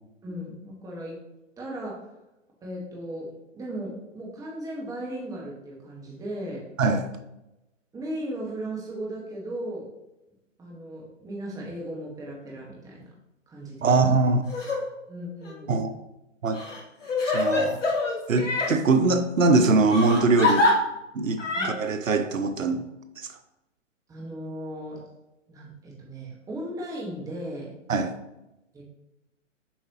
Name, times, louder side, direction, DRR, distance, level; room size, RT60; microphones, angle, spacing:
voice 1, 0.2-1.2 1.6-2.1 2.6-6.6 7.9-9.8 10.6-13.0 13.5-14.3 15.1-16.0 21.5-21.7 24.1-25.0 25.5-27.8 28.7-28.8, right 1 dB, 10° right, 1.4 m, -36 dB
voice 2, 13.8-14.4 15.7-15.9 16.4-16.6 17.2-17.8 18.3-20.7 21.1-22.8 23.2-23.3 27.9-28.1, right 3 dB, 90° right, 0.7 m, -22 dB
Crying sobbing, 14.5-14.8 15.4-15.5 16.5-18.7 19.9-20.7 21.4-21.7, left 3 dB, 70° left, 2.2 m, -25 dB
7.2 x 4.8 x 2.9 m
hypercardioid pair, 130°, 38 cm